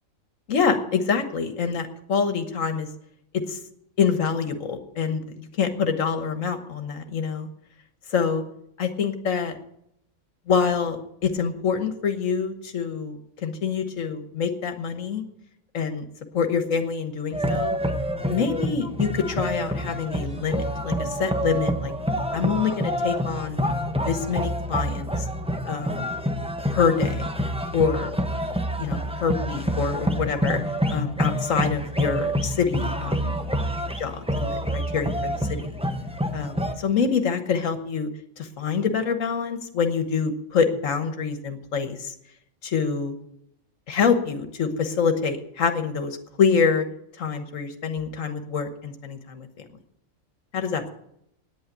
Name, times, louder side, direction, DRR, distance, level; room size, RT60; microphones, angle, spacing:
voice 1, 0.5-2.9 3.5-3.6 4.0-7.5 8.1-8.4 8.8-9.6 10.5-15.2 15.7-16.1 16.3-17.8 18.3-21.9 22.3-23.6 23.9-25.3 25.7-26.2 26.7-27.3 27.7-28.1 28.8-30.6 30.9-33.4 34.0-35.8 36.3-38.1 38.4-42.1 42.6-43.1 43.9-46.8 47.2-49.5 50.5-50.8, left 6 dB, 70° left, 8 dB, 1.6 m, -26 dB
sound 1, 17.3-36.7, equal, 5° right, 0.7 m, -27 dB
9.7 x 8.7 x 9.1 m, 0.77 s
omnidirectional pair, 1.4 m